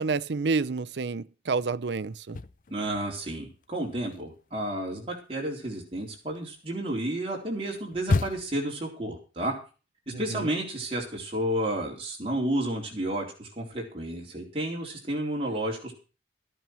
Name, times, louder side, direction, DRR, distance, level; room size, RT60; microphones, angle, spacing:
voice 1, 0.0-2.4 10.1-10.5, right 4 dB, 75° right, 0.6 m, -29 dB
sound 1, 2.1-3.3 3.6-8.7, left 3 dB, 45° left, 0.6 m, -33 dB
voice 2, 2.7-9.5 10.1-15.9, right 1 dB, 30° right, 4.0 m, -31 dB
14.0 x 8.8 x 6.1 m
head